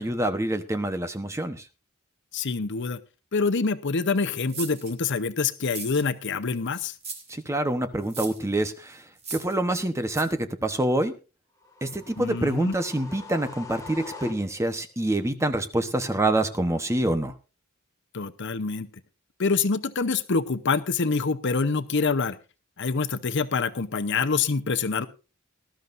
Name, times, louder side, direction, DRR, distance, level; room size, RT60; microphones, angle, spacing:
voice 1, 0.0-1.6 7.3-9.0 9.3-11.1 11.8-17.3, right 1 dB, 15° right, 9 dB, 1.0 m, -26 dB
voice 2, 2.3-3.0 3.3-6.9 12.2-12.7 18.1-18.9 19.4-22.4 22.8-25.1, left 4 dB, 60° left, 11 dB, 0.8 m, -26 dB
sound 1, 4.5-4.9 5.6-6.3 7.0-7.3 8.0-8.5 9.2-9.6 10.1-10.2, right 4 dB, 30° right, 2.7 m, -37 dB
sound 2, 11.6-14.8, left 3 dB, 15° left, 2.1 m, -43 dB
19.0 x 12.5 x 2.6 m, 0.31 s
head